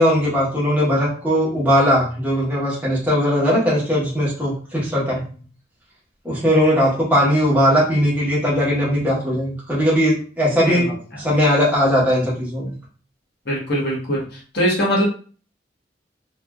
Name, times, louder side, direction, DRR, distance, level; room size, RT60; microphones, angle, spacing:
voice 1, 0.0-5.2 6.2-12.7, equal, 10° right, -6 dB, 1.0 m, -19 dB
voice 2, 10.6-11.2 13.4-15.0, equal, 60° left, -4 dB, 1.2 m, -22 dB
3.1 x 2.5 x 2.3 m, 0.40 s
head